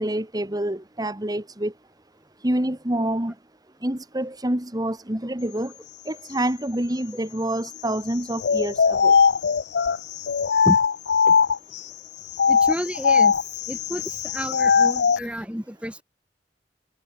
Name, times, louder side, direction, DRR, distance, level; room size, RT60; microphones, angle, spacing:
voice 1, 0.0-1.7 2.4-3.3 3.8-5.7 6.1-9.1, right 1 dB, 20° right, 2.2 m, -27 dB
sound 1, 8.4-11.8 12.3-15.2, left 6 dB, 70° left, 0.5 m, -20 dB
voice 2, 12.5-13.4 13.7-16.0, equal, 5° right, 3.4 m, -30 dB
head